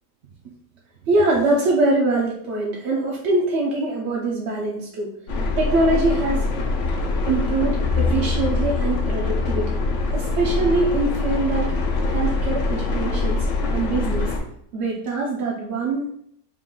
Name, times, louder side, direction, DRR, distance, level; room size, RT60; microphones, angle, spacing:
voice 1, 1.1-5.1 5.6-6.5 7.3-9.8 10.1-11.7 12.1-13.4 13.7-14.3 14.7-16.1, right 2 dB, 60° right, -2 dB, 0.7 m, -23 dB
sound 1, 5.3-14.4, left 3 dB, 60° left, 0.9 m, -23 dB
3.7 x 2.4 x 3.7 m, 0.69 s
omnidirectional pair, 1.6 m